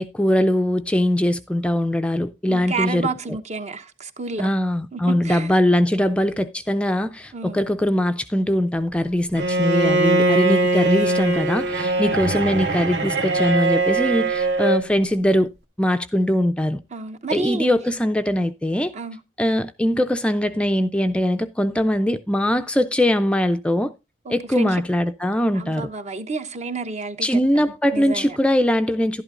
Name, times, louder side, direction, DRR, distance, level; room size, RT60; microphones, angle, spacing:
voice 1, 0.0-3.1 4.4-15.5 15.8-16.8 17.3-18.9 19.4-23.9 24.3-25.9 27.2-29.2, left 1 dB, 5° left, 0.4 m, -21 dB
voice 2, 2.5-4.5 4.9-5.5 7.3-7.6 12.0-12.3 16.9-17.7 18.9-19.2 24.2-24.8 25.5-28.4, right 3 dB, 40° right, 0.9 m, -30 dB
Bowed string instrument, 9.4-14.9, right 2 dB, 65° right, 1.6 m, -21 dB
11.5 x 11.0 x 2.5 m
head